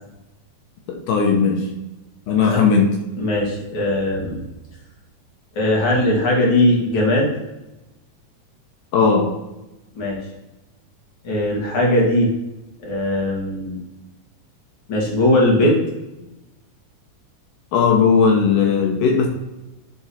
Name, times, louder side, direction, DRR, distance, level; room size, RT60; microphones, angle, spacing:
voice 1, 0.9-1.7 2.3-2.9 8.9-9.3 17.7-19.3, left 5 dB, 80° left, 2 dB, 2.5 m, -17 dB
voice 2, 3.2-4.4 5.5-7.3 9.9-10.2 11.2-12.3 12.8-13.8 14.9-15.8 16.2-16.3, left 1 dB, 45° left, -3 dB, 2.8 m, -19 dB
11.5 x 3.8 x 4.2 m, 0.98 s
omnidirectional pair, 3.7 m